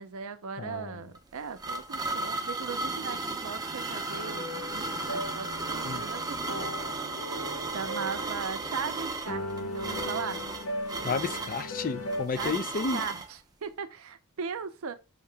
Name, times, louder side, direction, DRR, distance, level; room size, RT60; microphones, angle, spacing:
voice 1, 0.0-6.9 7.7-10.4 12.4-12.6 12.9-15.0, right 6 dB, 70° right, 0.5 m, -38 dB
voice 2, 0.6-1.0 5.8-6.0 11.0-13.0, left 4 dB, 40° left, 0.4 m, -32 dB
sound 1, 1.1-13.3, right 3 dB, 20° right, 0.6 m, -35 dB
sound 2, 4.1-12.3, left 1 dB, 70° left, 0.9 m, -38 dB
5.6 x 2.8 x 3.3 m
head